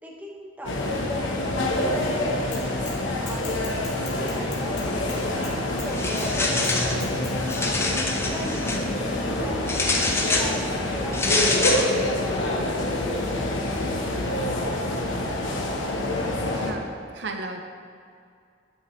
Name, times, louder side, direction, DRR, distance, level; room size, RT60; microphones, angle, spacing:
voice 1, 0.0-5.0 5.3-7.1 8.2-11.5 11.9-12.3, equal, 10° right, -2 dB, 0.9 m, -40 dB
sound 1, 0.7-16.7, left 1 dB, 80° left, 1.0 m, -26 dB
Bicycle / Mechanisms, 2.5-3.0 3.3-5.9 6.2-6.3 6.6-7.6, left 5 dB, 60° left, 2.0 m, -40 dB
sound 2, 5.9-7.0 7.4-8.8 9.7-10.5 11.1-11.9, left 2 dB, 15° left, 0.5 m, -25 dB
voice 2, 16.5-17.6, right 2 dB, 65° right, 4 dB, 0.6 m, -34 dB
9.4 x 8.2 x 3.1 m, 2.3 s
head